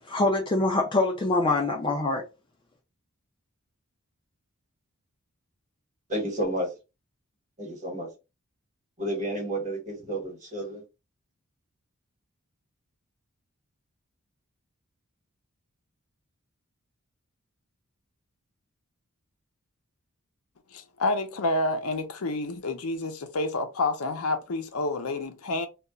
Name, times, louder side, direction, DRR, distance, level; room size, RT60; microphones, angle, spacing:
voice 1, 0.1-2.2, left 2 dB, 20° left, 0.4 m, -24 dB
voice 2, 6.1-6.7 7.6-8.1 9.0-10.8, right 1 dB, 35° right, 1.2 m, -31 dB
voice 3, 20.7-25.7, left 2 dB, 75° left, 0.6 m, -29 dB
2.3 x 2.1 x 3.6 m
head